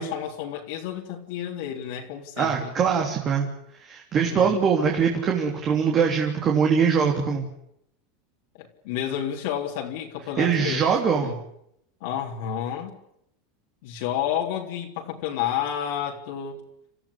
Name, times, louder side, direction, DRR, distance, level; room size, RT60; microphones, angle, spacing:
voice 1, 0.0-2.7 4.2-4.6 8.6-11.4 12.0-13.0 13.8-16.6, left 9 dB, 65° left, -1 dB, 3.7 m, -31 dB
voice 2, 2.4-3.5 3.8-7.5 10.4-11.3, right 6 dB, 25° right, 1 dB, 3.3 m, -22 dB
28.5 x 15.0 x 10.0 m, 0.76 s
supercardioid pair, 155°, 0 cm